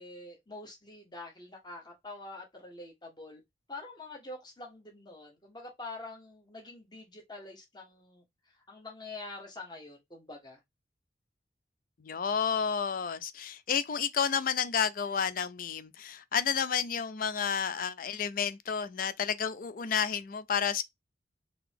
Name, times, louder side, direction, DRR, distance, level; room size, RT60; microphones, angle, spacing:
voice 1, 0.0-3.4 3.7-10.6, left 2 dB, 25° left, 1.4 m, -46 dB
voice 2, 12.0-20.8, left 7 dB, 50° left, 0.4 m, -31 dB
3.9 x 2.8 x 3.5 m
head